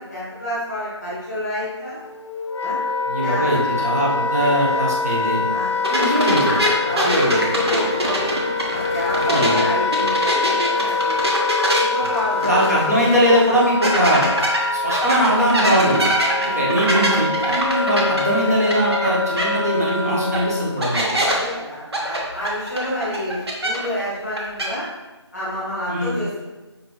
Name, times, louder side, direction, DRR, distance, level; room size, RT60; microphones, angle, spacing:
voice 1, 0.0-2.0 2.6-2.8 3.2-3.9 4.4-4.8 5.5-5.7 6.4-8.3 8.7-11.1 11.8-12.8 16.5-16.6 16.9-17.0 20.0-20.3 21.2-24.8 25.3-26.5, equal, ahead, -10 dB, 1.1 m, -29 dB
Wind instrument woodwind instrument, 2.0-20.8, left 3 dB, 80° left, 0.5 m, -24 dB
voice 2, 3.1-5.5 5.9-6.6 6.9-7.4 9.2-9.6 12.0-12.1 12.4-14.2 14.7-16.0 16.4-21.2 25.9-26.1, equal, 35° right, -6 dB, 1.0 m, -20 dB
sound 1, 5.8-9.6 9.9-12.8 13.1-13.2 13.8-19.1 19.4-19.5 20.3-20.4 20.8-21.3 21.9-24.0 24.3-24.7, right 1 dB, 60° right, 1.0 m, -23 dB
5.3 x 2.9 x 3.0 m, 1.1 s
figure-of-eight pair, 175°, 15 cm